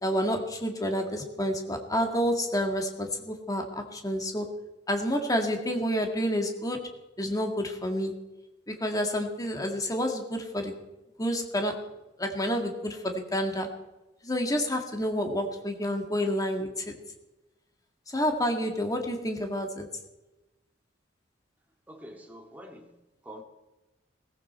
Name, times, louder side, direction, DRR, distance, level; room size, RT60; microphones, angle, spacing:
voice 1, 0.0-4.5 4.9-6.9 7.2-8.1 8.7-10.8 11.2-11.8 12.2-13.7 14.2-17.0 18.1-19.9, equal, 20° left, 4 dB, 1.9 m, -29 dB
voice 2, 21.9-22.9 23.2-23.4, equal, 10° right, 2 dB, 2.0 m, -45 dB
17.5 x 15.5 x 4.5 m, 1.0 s
head